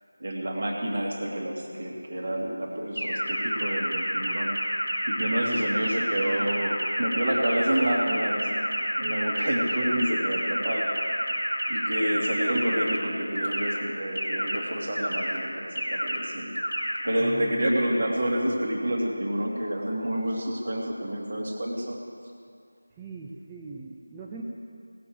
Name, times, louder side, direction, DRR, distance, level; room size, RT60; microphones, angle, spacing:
voice 1, 0.2-4.5 5.1-8.5 9.0-11.4 11.7-16.5 17.0-22.0, right 1 dB, 45° right, 0 dB, 2.3 m, -28 dB
sound 1, 3.0-13.0 13.4-13.8 14.2-14.6 15.0-15.4 15.8-16.2 16.6-17.0, equal, 75° right, 2.5 m, -29 dB
voice 2, 17.2-17.8 23.0-24.4, right 4 dB, 10° right, -4 dB, 0.5 m, -41 dB
18.0 x 6.9 x 7.6 m, 2.3 s
figure-of-eight pair, 165°, 0 cm